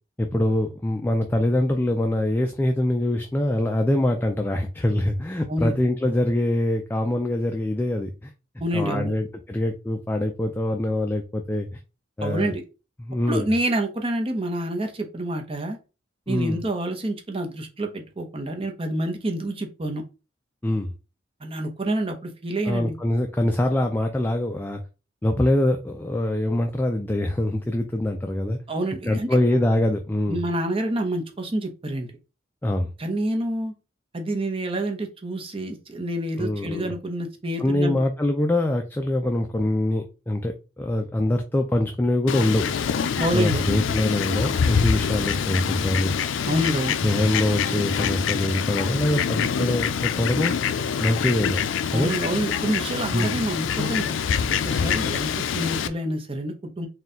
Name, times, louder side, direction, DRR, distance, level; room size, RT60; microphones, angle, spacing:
voice 1, 0.2-8.3 8.7-11.7 12.2-12.5 13.0-13.5 16.3-16.6 20.6-20.9 22.7-24.8 25.2-28.6 29.1-30.4 32.6-32.9 36.4-36.9 37.6-42.7 43.3-46.2 47.0-50.5 51.0-51.6 51.9-52.1 53.1-53.3, left 1 dB, 10° left, 0.3 m, -24 dB
voice 2, 8.6-9.1 12.2-12.6 13.3-15.8 16.3-20.0 21.4-22.9 28.7-29.3 30.3-32.1 33.0-33.7 34.1-38.0 43.2-43.6 46.5-47.0 51.9-54.1 54.5-56.9, right 1 dB, 30° right, 0.7 m, -27 dB
Fowl, 42.3-55.9, left 7 dB, 80° left, 0.4 m, -25 dB
4.2 x 2.3 x 3.7 m
head